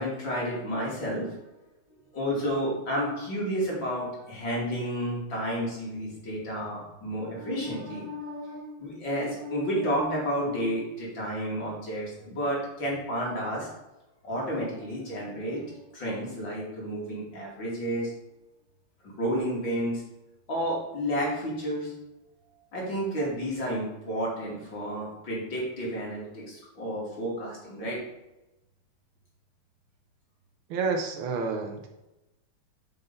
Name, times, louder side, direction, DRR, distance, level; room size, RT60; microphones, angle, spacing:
voice 1, 0.0-1.4 2.1-13.7 14.2-18.1 19.0-20.0 20.5-21.9 22.7-28.0, equal, 60° left, -4 dB, 3.3 m, -31 dB
voice 2, 30.7-31.9, right 4 dB, 75° right, 2 dB, 1.7 m, -29 dB
6.7 x 5.7 x 5.4 m, 0.96 s
omnidirectional pair, 2.3 m